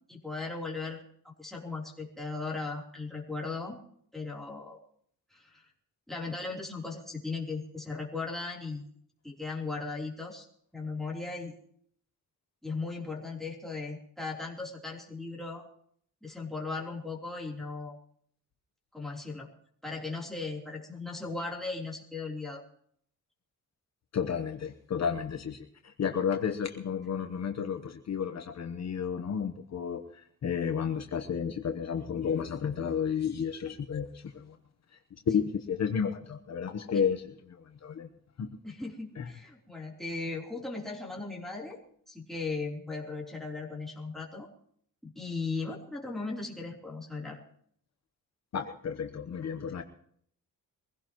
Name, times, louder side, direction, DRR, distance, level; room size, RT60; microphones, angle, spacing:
voice 1, 0.1-3.8 4.1-4.8 5.3-5.7 6.1-8.9 9.2-10.5 10.7-11.5 12.6-15.6 16.2-18.0 18.9-19.5 19.8-22.6 38.6-41.8 42.1-44.5 45.0-47.4, left 3 dB, ahead, -4 dB, 3.5 m, -37 dB
voice 2, 24.1-34.6 35.3-38.1 38.4-38.5 39.2-39.3 48.5-49.8, left 7 dB, 55° left, 5 dB, 1.1 m, -32 dB
23.0 x 16.0 x 3.1 m, 0.62 s
cardioid pair, 125°, 33 cm